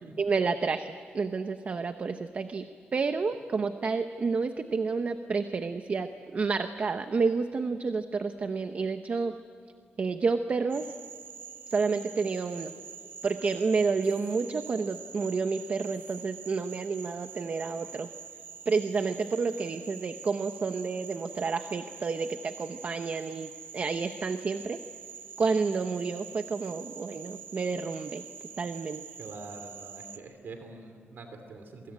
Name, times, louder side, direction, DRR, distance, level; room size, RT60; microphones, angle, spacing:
voice 1, 0.2-2.7 2.9-9.3 10.0-10.9 11.7-12.7 13.2-18.1 18.7-24.8 25.4-28.2 28.6-29.0, right 4 dB, 40° right, 8 dB, 0.9 m, -30 dB
Frog, 10.7-30.2, right 7 dB, 85° right, 1.7 m, -46 dB
voice 2, 29.2-31.9, right 3 dB, 65° right, 6 dB, 2.9 m, -45 dB
27.5 x 24.0 x 8.9 m, 2.2 s
wide cardioid pair, 165°, 4 cm